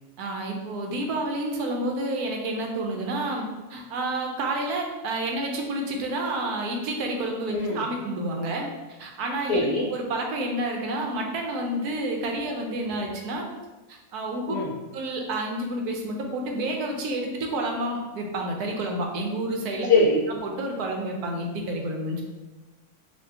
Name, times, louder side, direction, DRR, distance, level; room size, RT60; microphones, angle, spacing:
voice 1, 0.2-8.7 9.0-13.5 13.9-14.5 14.9-19.9 20.4-22.2, right 1 dB, 90° right, 1 dB, 1.2 m, -29 dB
voice 2, 7.5-7.9 9.5-9.9 14.5-14.7 19.8-20.3, left 2 dB, 65° left, -4 dB, 0.7 m, -22 dB
4.3 x 2.7 x 2.7 m, 1.2 s
omnidirectional pair, 1.6 m